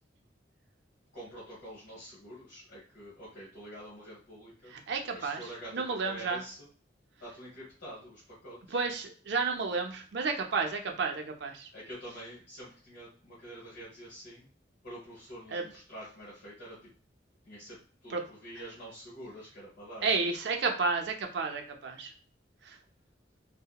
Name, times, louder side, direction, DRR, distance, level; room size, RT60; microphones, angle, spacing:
voice 1, 1.1-4.7 5.1-6.7 7.2-8.8 11.7-14.5 14.8-16.9 17.4-20.1, right 1 dB, 70° left, -7 dB, 1.1 m, -47 dB
voice 2, 4.9-5.4 5.7-6.4 8.7-11.7 15.5-15.6 18.1-18.2 20.0-22.1 22.6-22.8, right 4 dB, 65° right, 3 dB, 0.5 m, -31 dB
2.8 x 2.0 x 2.2 m, 0.42 s
head